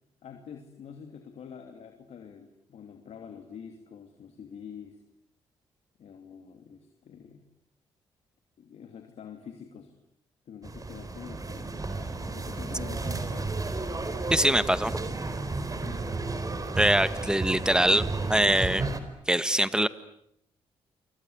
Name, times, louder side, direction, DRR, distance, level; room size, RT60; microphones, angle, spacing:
voice 1, 0.2-5.0 6.0-7.4 8.6-10.0 10.5-11.7 12.3-13.5 15.8-16.0, left 7 dB, 70° left, 5 dB, 2.9 m, -46 dB
sound 1, 10.6-19.0, right 3 dB, 30° right, 4.3 m, -33 dB
voice 2, 14.3-14.9 16.8-18.9 19.3-19.9, right 1 dB, 5° right, 13 dB, 1.8 m, -23 dB
30.0 x 25.0 x 8.1 m, 0.72 s
supercardioid pair, 60°, 11 cm